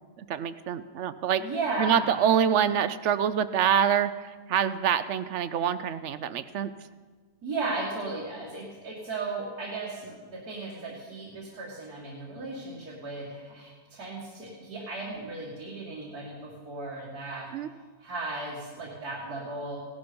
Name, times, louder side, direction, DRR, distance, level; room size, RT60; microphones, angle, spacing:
voice 1, 0.2-1.5 1.8-6.7 17.5-17.7, right 8 dB, 65° right, 14 dB, 0.7 m, -26 dB
voice 2, 1.4-2.2 7.4-17.5 18.0-19.8, right 3 dB, 85° right, -4 dB, 2.6 m, -35 dB
16.5 x 12.0 x 5.2 m, 1.5 s
omnidirectional pair, 1.6 m